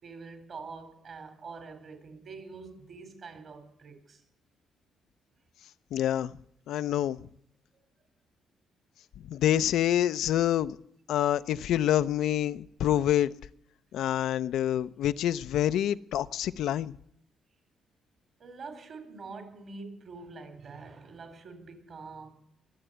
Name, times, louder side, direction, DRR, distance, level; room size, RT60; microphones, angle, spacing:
voice 1, 0.0-4.2 7.7-7.8 18.4-22.3, right 4 dB, 55° right, 3.8 m, -45 dB
voice 2, 5.9-6.3 6.7-7.2 9.3-10.8 11.1-13.3 13.9-17.0, left 11 dB, 80° left, 0.5 m, -27 dB
22.5 x 7.6 x 8.0 m
cardioid pair, 90°, 0 cm